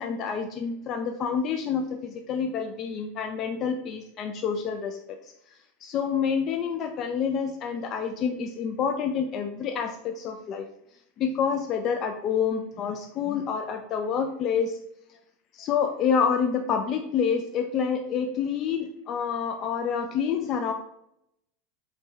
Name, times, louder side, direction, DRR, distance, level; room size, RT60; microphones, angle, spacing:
voice 1, 0.0-5.2 5.8-10.7 11.2-14.8 15.6-20.7, left 6 dB, 30° left, 6 dB, 0.3 m, -28 dB
3.7 x 3.2 x 4.0 m, 0.77 s
supercardioid pair, 160°, 0 cm